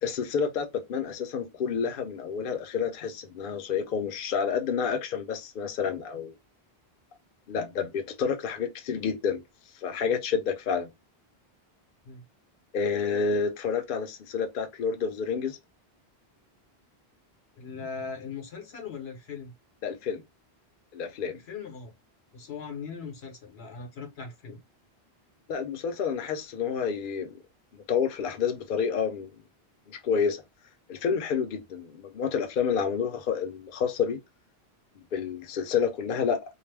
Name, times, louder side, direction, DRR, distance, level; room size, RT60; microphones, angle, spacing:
voice 1, 0.0-6.3 7.5-9.4 9.8-10.9 12.7-15.6 19.8-20.2 20.9-21.4 25.5-27.3 27.7-29.3 29.9-30.4 30.9-34.2 35.1-36.4, left 6 dB, 60° left, 0.7 m, -29 dB
voice 2, 17.6-19.5 21.3-21.9 22.3-24.6, left 5 dB, 80° left, 1.1 m, -39 dB
2.4 x 2.0 x 3.2 m
omnidirectional pair, 1.1 m